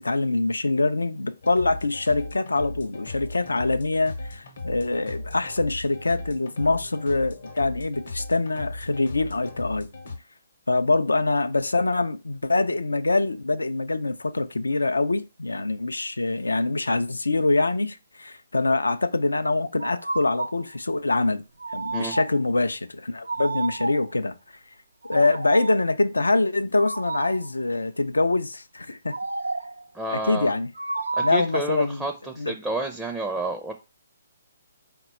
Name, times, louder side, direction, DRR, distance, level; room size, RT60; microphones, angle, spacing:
voice 1, 0.0-9.9 10.7-21.4 21.7-24.3 25.1-29.2 30.1-30.7 31.2-32.0 32.4-32.6, left 2 dB, 85° left, 0.4 m, -24 dB
sound 1, 1.4-10.2, left 2 dB, 60° left, 0.8 m, -37 dB
sound 2, 19.8-20.6 21.6-22.5 23.3-24.2 25.0-25.9 26.8-27.5 29.1-29.8 30.8-31.5, right 3 dB, 85° right, 0.3 m, -31 dB
voice 2, 29.9-30.5 31.2-33.7, right 2 dB, 5° right, 0.4 m, -30 dB
4.0 x 2.2 x 4.1 m
figure-of-eight pair, 140°, 0 cm